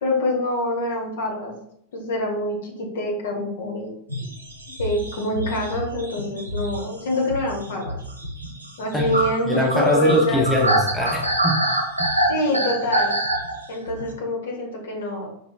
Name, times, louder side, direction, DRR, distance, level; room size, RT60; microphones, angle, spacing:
voice 1, 0.0-1.5 1.9-3.9 4.8-8.0 8.8-10.5 12.3-13.1 13.7-15.3, left 2 dB, 60° left, -1 dB, 1.1 m, -25 dB
sound 1, 4.1-14.1, right 1 dB, 85° right, 0.7 m, -26 dB
voice 2, 9.4-11.6, equal, 5° left, -1 dB, 0.7 m, -22 dB
5.1 x 2.9 x 2.4 m, 0.72 s
figure-of-eight pair, 90°, 0 cm